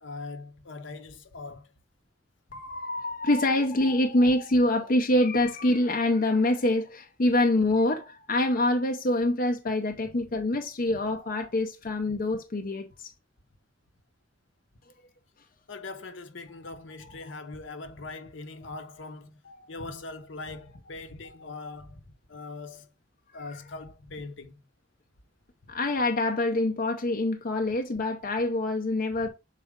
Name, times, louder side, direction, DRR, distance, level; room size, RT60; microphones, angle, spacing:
voice 1, 0.0-1.7 10.9-11.0 15.7-19.4 19.7-22.9 23.3-24.6 25.6-25.7, left 3 dB, 70° left, 0.9 m, -41 dB
voice 2, 2.5-13.1 16.6-16.8 19.4-19.7 21.5-21.7 23.5-23.6 25.7-29.3, left 1 dB, 50° left, 0.6 m, -25 dB
6.4 x 4.1 x 3.6 m
head